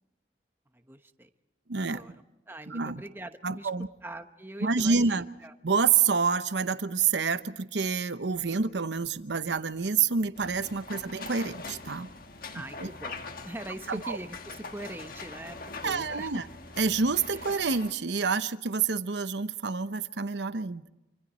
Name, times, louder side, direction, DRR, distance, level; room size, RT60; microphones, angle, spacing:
voice 1, 0.9-1.3 1.9-2.1 2.5-3.7 4.0-5.5 10.9-11.0 12.5-16.4, right 1 dB, 10° right, 7 dB, 1.0 m, -42 dB
voice 2, 1.7-2.0 2.7-3.0 3.4-3.9 4.6-5.3 5.6-12.1 12.5-12.9 13.9-14.2 15.8-16.4 16.8-20.8, right 5 dB, 80° right, 12 dB, 0.9 m, -28 dB
sound 1, 10.4-17.9, left 3 dB, 55° left, 1.5 m, -43 dB
26.5 x 25.5 x 4.3 m, 0.98 s
head